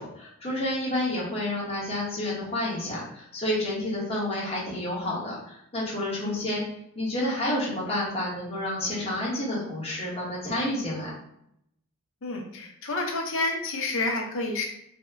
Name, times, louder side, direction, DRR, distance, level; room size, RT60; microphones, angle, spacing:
voice 1, 0.0-6.6 6.9-11.1, left 1 dB, 30° left, -6 dB, 1.1 m, -29 dB
voice 2, 12.2-14.6, left 2 dB, 65° left, 1 dB, 0.7 m, -29 dB
2.7 x 2.2 x 3.4 m, 0.76 s
head